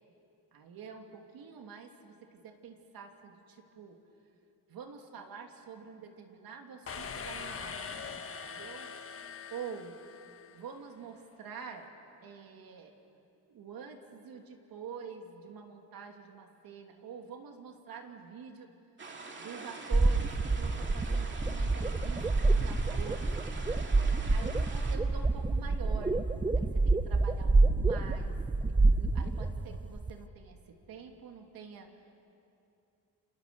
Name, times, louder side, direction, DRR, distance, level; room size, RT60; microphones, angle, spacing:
voice 1, 0.5-4.0 4.7-8.9 9.5-10.0 10.5-11.9 12.2-12.9 13.5-18.7 19.4-23.3 24.0-26.2 26.5-28.4 28.7-31.9, right 6 dB, 65° right, 3 dB, 2.9 m, -47 dB
sound 1, 6.9-10.6, left 6 dB, 35° left, 1.4 m, -42 dB
sound 2, 19.0-25.0, right 3 dB, 30° right, 2.4 m, -45 dB
sound 3, 19.9-30.1, right 3 dB, 15° right, 0.7 m, -27 dB
29.5 x 25.5 x 7.0 m, 2.7 s
cardioid pair, 135°, 38 cm